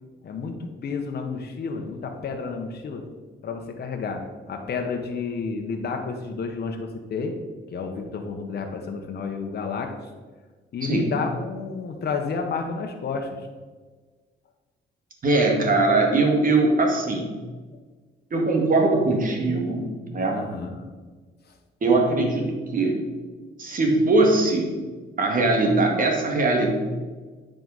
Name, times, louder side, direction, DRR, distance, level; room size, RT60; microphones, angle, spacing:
voice 1, 0.2-3.0 3.4-4.2 4.5-7.3 7.7-9.9 10.7-13.4 20.3-20.9, left 5 dB, 55° left, 3 dB, 1.1 m, -30 dB
voice 2, 10.8-11.1 15.2-17.4 18.3-20.5 21.8-23.0 23.6-24.7 25.2-26.8, right 2 dB, 45° right, 1 dB, 2.0 m, -21 dB
9.3 x 5.2 x 4.1 m, 1.4 s
cardioid pair, 90°, 20 cm